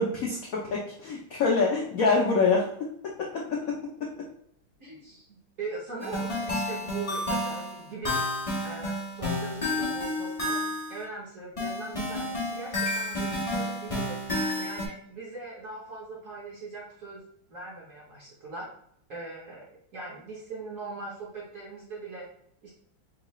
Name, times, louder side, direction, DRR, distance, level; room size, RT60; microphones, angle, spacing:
voice 1, 0.0-2.7 3.0-4.1, left 4 dB, 70° left, -2 dB, 0.8 m, -26 dB
voice 2, 4.8-8.3 8.6-17.2 17.5-18.7 19.1-19.7 19.9-22.3 22.6-22.7, right 3 dB, 50° right, -5 dB, 1.0 m, -41 dB
sound 1, 6.0-11.0 11.6-14.9, left 1 dB, 35° left, 0.5 m, -30 dB
4.6 x 2.4 x 3.0 m, 0.68 s
omnidirectional pair, 2.3 m